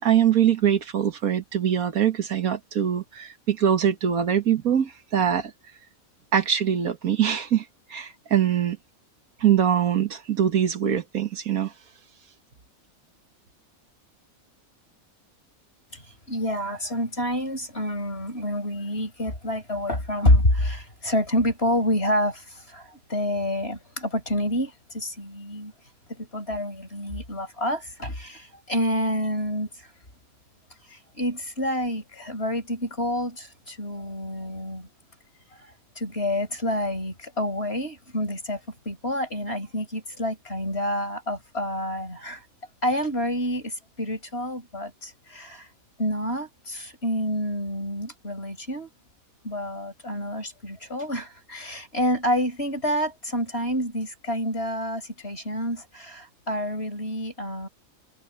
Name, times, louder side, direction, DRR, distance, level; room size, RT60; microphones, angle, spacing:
voice 1, 0.0-5.5 6.3-7.6 7.9-8.8 9.4-11.7, right 9 dB, 85° right, 1.9 m, -23 dB
voice 2, 15.9-25.7 26.1-29.9 30.9-34.9 35.6-38.6 38.9-42.5 42.8-45.7 46.0-48.9 49.4-57.7, equal, 45° left, 5.7 m, -28 dB
omnidirectional pair, 1.5 m